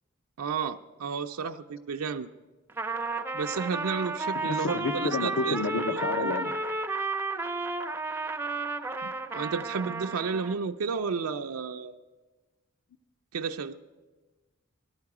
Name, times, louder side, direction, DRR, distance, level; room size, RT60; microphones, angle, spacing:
voice 1, 0.4-2.3 3.3-5.6 5.9-6.3 9.0-11.9 13.3-13.7, right 5 dB, 80° right, 6 dB, 0.4 m, -32 dB
Trumpet, 2.7-10.6, right 3 dB, 10° right, 0.4 m, -32 dB
voice 2, 4.4-6.5, left 3 dB, 65° left, 8 dB, 0.7 m, -30 dB
18.5 x 13.0 x 4.8 m, 1.2 s
head